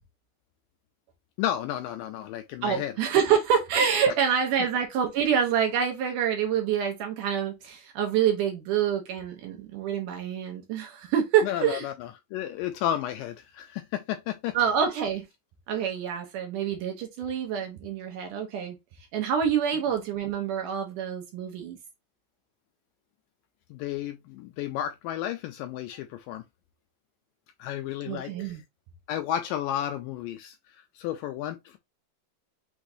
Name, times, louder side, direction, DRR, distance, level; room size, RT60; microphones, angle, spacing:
voice 1, 1.4-2.9 11.4-14.6 23.7-26.4 27.6-28.6 29.1-31.8, left 11 dB, 80° left, 2.0 m, -32 dB
voice 2, 2.6-11.9 14.5-15.3 15.7-18.8 19.1-21.8 28.1-28.6, right 8 dB, 75° right, 2.1 m, -26 dB
5.9 x 3.1 x 2.6 m
omnidirectional pair, 4.2 m